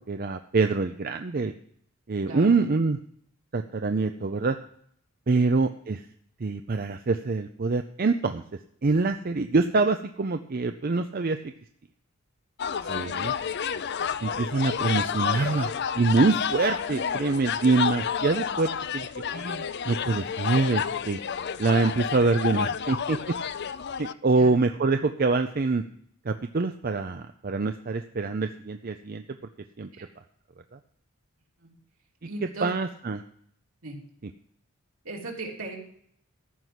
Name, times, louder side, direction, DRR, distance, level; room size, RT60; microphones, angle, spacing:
voice 1, 0.1-1.5 2.1-3.0 3.5-4.6 5.3-6.0 6.4-8.4 8.8-11.5 12.9-13.3 14.2-19.1 19.3-21.2 21.6-23.4 24.0-25.8 26.3-29.2 29.8-29.9 32.6-33.2, right 3 dB, 40° right, 8 dB, 0.5 m, -25 dB
sound 1, 12.6-24.1, left 7 dB, 50° left, 0.5 m, -30 dB
voice 2, 12.8-13.2 24.4-24.5 29.9-30.0 31.6-31.7 32.2-32.7 33.8-34.0 35.0-35.8, right 2 dB, 70° right, -1 dB, 3.3 m, -38 dB
14.0 x 5.8 x 8.0 m, 0.65 s
head